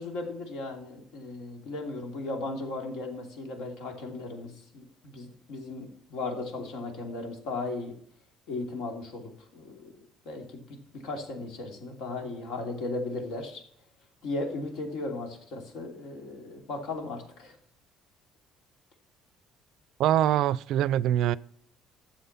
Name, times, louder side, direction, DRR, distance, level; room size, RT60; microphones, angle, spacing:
voice 1, 0.0-7.9 8.5-10.0 10.2-13.6 14.2-17.5, left 2 dB, 75° left, 2.8 m, -36 dB
voice 2, 20.0-21.4, right 12 dB, 65° right, 0.4 m, -24 dB
12.5 x 7.3 x 5.6 m
cardioid pair, 145°, 0 cm